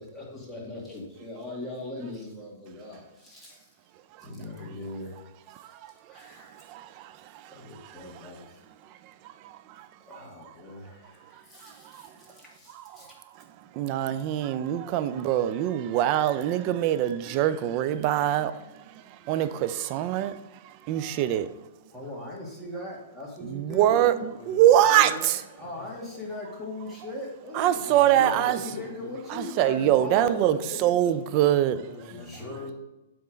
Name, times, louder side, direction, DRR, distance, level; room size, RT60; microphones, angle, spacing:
voice 1, 0.0-3.7 4.2-5.1 5.5-5.6 5.9-6.6 7.5-8.6 10.0-13.2 21.9-24.2 25.6-31.1 32.1-32.7, left 2 dB, 10° left, 2.4 m, -40 dB
voice 2, 6.7-7.1 7.4-7.5 9.4-9.9 11.6-12.0 13.8-18.5 19.3-20.4 20.6-21.5 23.4-25.1 27.5-28.6 29.3-31.8, right 12 dB, 40° right, 0.5 m, -24 dB
voice 3, 24.4-25.9 27.7-29.1 29.7-29.9 31.5-32.7, left 2 dB, 40° left, 2.5 m, -43 dB
8.5 x 3.7 x 5.2 m
hypercardioid pair, 130°, 0 cm